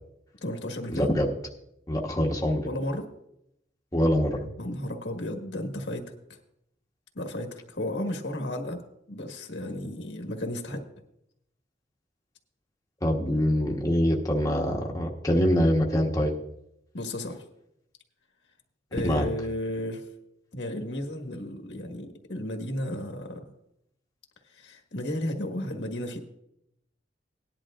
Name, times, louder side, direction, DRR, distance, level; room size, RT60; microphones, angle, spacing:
voice 1, 0.4-1.1 2.6-3.1 4.6-6.1 7.1-8.8 9.1-10.8 16.9-17.4 18.9-20.0 20.5-23.4 24.5-26.2, left 1 dB, 80° left, 4 dB, 1.5 m, -33 dB
voice 2, 0.9-1.3 1.9-2.7 3.9-4.5 13.0-16.3 19.0-19.3, equal, 20° left, -2 dB, 1.2 m, -24 dB
18.5 x 11.0 x 2.5 m, 0.81 s
head